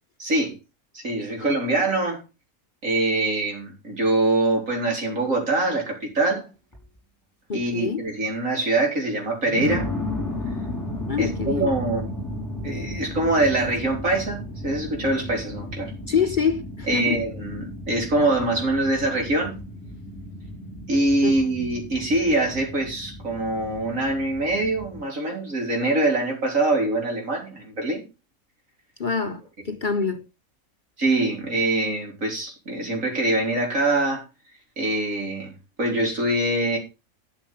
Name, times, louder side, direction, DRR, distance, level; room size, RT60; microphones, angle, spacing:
voice 1, 0.2-0.6 0.9-2.2 2.8-6.5 7.5-9.9 11.2-12.1 12.6-15.9 16.9-19.5 20.9-28.0 31.0-34.2 34.8-35.5 35.8-36.8, right 2 dB, 70° right, 4.5 m, -24 dB
sound 1, 6.7-7.0 7.6-7.7 9.4-25.0, left 1 dB, 15° left, 5.8 m, -34 dB
voice 2, 7.5-8.0 11.1-11.7 16.1-17.2 21.2-21.8 29.0-30.3, left 6 dB, 40° left, 0.8 m, -26 dB
12.5 x 6.9 x 5.7 m
omnidirectional pair, 1.4 m